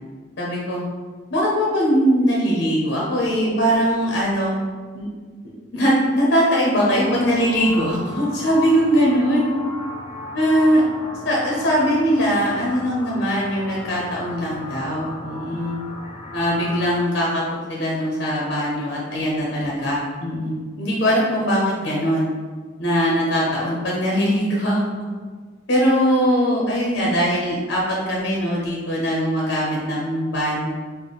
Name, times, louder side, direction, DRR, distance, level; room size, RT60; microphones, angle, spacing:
voice 1, 0.4-0.8 1.3-4.6 4.9-5.1 5.7-9.5 10.3-10.8 11.2-15.8 16.3-17.4 17.7-22.3 22.8-25.1 25.7-30.7, equal, 70° left, -4 dB, 0.7 m, -21 dB
sound 1, 6.9-17.0, left 1 dB, 30° left, 0.3 m, -36 dB
3.6 x 2.1 x 3.9 m, 1.5 s
head